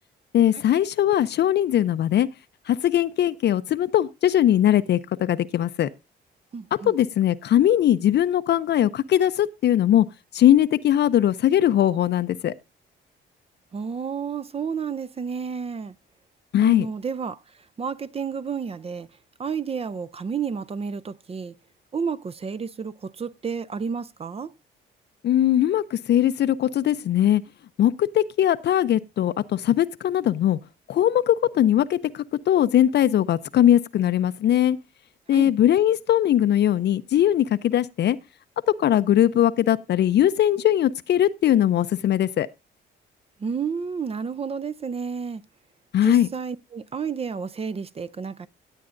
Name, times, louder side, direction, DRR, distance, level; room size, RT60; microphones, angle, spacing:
voice 1, 0.3-2.3 2.7-5.9 6.8-10.1 10.3-12.5 16.5-16.9 25.2-27.4 27.8-30.6 30.9-34.8 35.3-38.2 38.8-42.5 45.9-46.3, left 11 dB, 60° left, 0.5 m, -20 dB
voice 2, 6.5-6.9 13.7-15.9 16.6-17.4 17.8-19.1 19.4-21.5 21.9-24.5 35.3-35.5 43.4-45.4 46.0-48.5, right 6 dB, 30° right, 0.5 m, -31 dB
16.5 x 8.6 x 2.5 m
cardioid pair, 90°, 20 cm